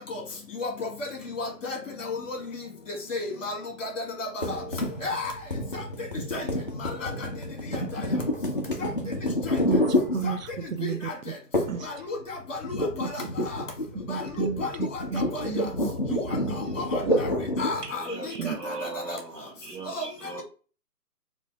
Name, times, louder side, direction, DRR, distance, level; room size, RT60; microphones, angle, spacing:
voice 1, 1.4-1.8 2.1-2.4 3.1-4.6 5.0-5.3 6.3-6.4 7.0-7.1 10.2-10.3 10.8-11.1 11.9-12.2 12.5-12.8 14.1-14.2 14.6-14.7 15.1-15.4 16.9-17.3 17.6-18.3 18.8-19.2 19.9-20.0, left 3 dB, 50° left, 1.4 m, -32 dB
sound 1, 4.4-10.7 11.5-11.9 12.2-17.9, left 1 dB, 35° left, 0.5 m, -29 dB
voice 2, 9.7-11.1 11.7-11.9 13.4-13.5 14.1-14.6 15.1-16.2 16.4-16.6 17.0-17.2 18.4-18.6, right 6 dB, 55° right, 0.5 m, -32 dB
voice 3, 15.1-16.0 17.8-20.4, right 3 dB, 80° right, 1.4 m, -40 dB
3.3 x 2.7 x 3.2 m
figure-of-eight pair, 155°, 48 cm